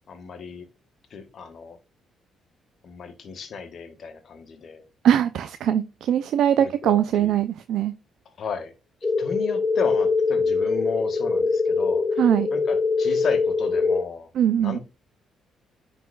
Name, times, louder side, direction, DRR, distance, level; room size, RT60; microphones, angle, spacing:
voice 1, 0.1-0.7 1.1-1.8 2.8-4.8 6.6-7.3 8.4-8.7 9.2-14.3 14.6-14.8, left 5 dB, 60° left, 7 dB, 1.6 m, -34 dB
voice 2, 5.0-7.9 12.2-12.5 14.3-14.8, right 10 dB, 75° right, 11 dB, 0.4 m, -21 dB
sound 1, 9.0-14.0, left 4 dB, 25° left, 2.1 m, -23 dB
9.9 x 4.1 x 2.3 m, 0.27 s
cardioid pair, 75°, 0 cm